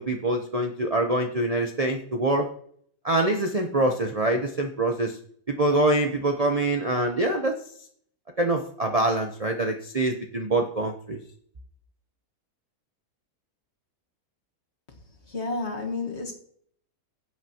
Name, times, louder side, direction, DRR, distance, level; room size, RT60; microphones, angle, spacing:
voice 1, 0.0-2.5 3.0-5.2 5.5-7.6 8.4-11.2, right 2 dB, 35° right, 0.7 m, -25 dB
voice 2, 15.3-16.3, left 3 dB, 45° left, 1.8 m, -30 dB
16.5 x 7.9 x 2.9 m
omnidirectional pair, 1.7 m